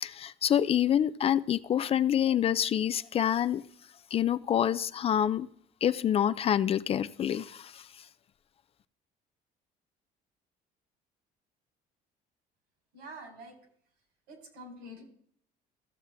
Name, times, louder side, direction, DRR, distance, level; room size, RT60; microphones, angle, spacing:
voice 1, 0.0-3.6 4.1-5.5 5.8-8.0, left 10 dB, 35° left, 0.4 m, -27 dB
voice 2, 12.9-13.5 14.3-15.0, right 1 dB, 75° right, 4.0 m, -46 dB
14.5 x 7.3 x 3.5 m
cardioid pair, 125°, 17 cm